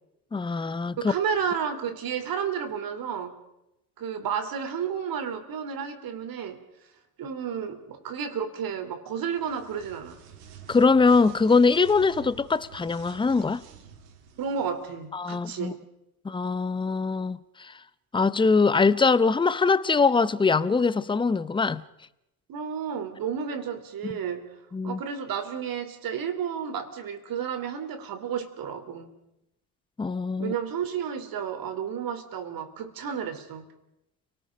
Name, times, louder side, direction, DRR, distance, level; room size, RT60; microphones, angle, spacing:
voice 1, 0.3-1.1 10.7-13.6 15.1-15.7 16.2-17.7 18.1-21.8 24.0-24.1 24.7-25.0 30.0-30.5, left 4 dB, 10° left, 0.8 m, -22 dB
voice 2, 1.0-3.4 4.0-6.6 7.2-10.2 14.4-15.8 22.5-24.5 24.8-29.2 30.4-33.6, right 7 dB, 45° right, 3.2 m, -32 dB
sound 1, 9.3-15.0, right 7 dB, 65° right, 3.5 m, -49 dB
30.0 x 19.0 x 5.1 m
hypercardioid pair, 85°, 50 cm